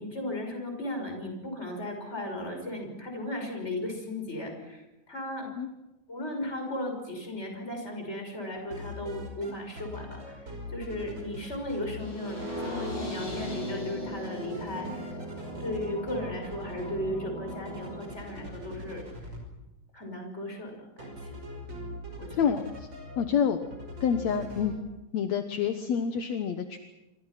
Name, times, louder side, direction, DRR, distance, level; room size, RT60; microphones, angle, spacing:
voice 1, 0.0-5.5 6.1-15.2 15.6-19.0 19.9-21.3 22.2-22.5, left 1 dB, 20° left, 3 dB, 6.2 m, -36 dB
sound 1, 8.6-9.5 9.8-12.1 12.4-13.9 14.2-19.4 21.0-23.3 23.6-24.8, left 1 dB, 35° right, 6.3 m, -42 dB
sound 2, 12.0-18.0, equal, 40° left, 9.1 m, -38 dB
voice 2, 22.3-22.9 23.2-23.6 24.0-24.7 25.1-26.8, left 7 dB, 65° left, 7 dB, 2.3 m, -28 dB
27.5 x 25.0 x 6.0 m, 1.0 s
omnidirectional pair, 3.5 m